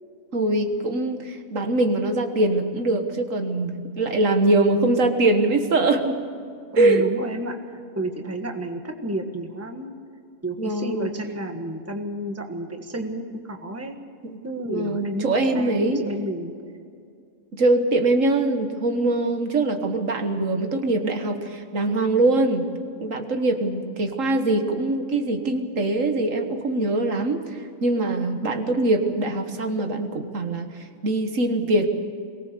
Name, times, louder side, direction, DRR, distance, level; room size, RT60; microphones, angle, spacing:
voice 1, 0.3-6.2 6.8-7.0 10.6-11.1 14.2-14.4 14.7-16.0 17.5-22.7 23.0-31.9, right 2 dB, 70° right, 6 dB, 1.8 m, -23 dB
voice 2, 6.7-9.9 10.4-14.0 14.4-16.5, right 1 dB, 10° right, 4 dB, 1.5 m, -31 dB
23.0 x 19.0 x 6.7 m, 2.3 s
omnidirectional pair, 1.4 m